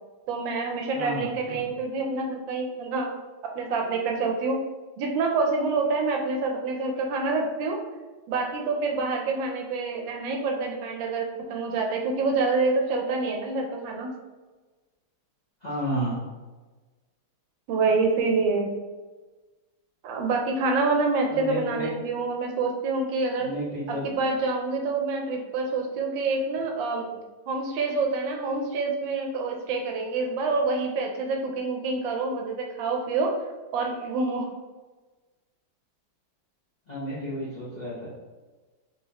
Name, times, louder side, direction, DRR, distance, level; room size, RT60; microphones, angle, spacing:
voice 1, 0.3-3.1 3.6-4.6 5.0-7.8 8.3-14.1 17.7-18.7 20.0-23.5 23.9-27.1 27.5-33.4 33.7-34.5, right 3 dB, 75° right, 2 dB, 1.2 m, -27 dB
voice 2, 0.9-1.7 15.6-16.2 21.3-21.9 23.4-24.2 36.9-38.1, equal, 80° left, -9 dB, 0.3 m, -32 dB
4.1 x 3.3 x 2.9 m, 1.3 s
omnidirectional pair, 2.3 m